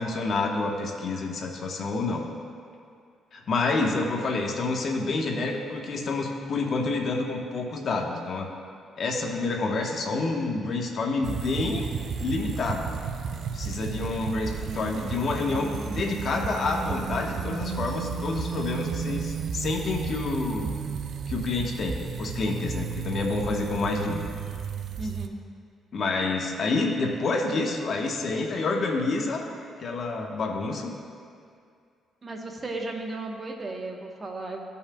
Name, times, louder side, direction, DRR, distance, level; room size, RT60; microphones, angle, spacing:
voice 1, 0.0-2.3 3.3-8.5 9.0-11.9 12.2-12.9 13.5-20.7 21.3-24.2 25.9-29.4 29.8-30.9, left 3 dB, 55° left, 1 dB, 1.0 m, -28 dB
sound 1, 11.2-25.3, right 6 dB, 65° right, 0.4 m, -33 dB
voice 2, 25.0-25.4 32.2-34.7, right 2 dB, 30° right, 1 dB, 1.0 m, -35 dB
14.0 x 5.6 x 2.2 m, 2.3 s
cardioid pair, 90°, 0 cm